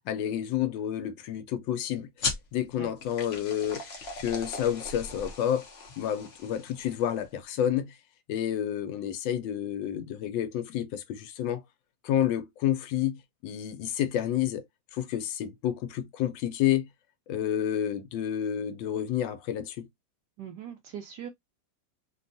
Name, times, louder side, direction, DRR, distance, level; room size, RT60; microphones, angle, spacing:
voice 1, 0.1-3.8 4.2-5.7 6.0-8.0 8.3-11.6 12.0-14.7 14.9-16.9 17.3-19.9, left 10 dB, 75° left, 1.3 m, -30 dB
sound 1, 2.2-7.3, left 4 dB, 60° left, 0.6 m, -38 dB
voice 2, 20.4-21.3, right 8 dB, 75° right, 1.0 m, -40 dB
3.3 x 2.3 x 2.5 m
omnidirectional pair, 2.1 m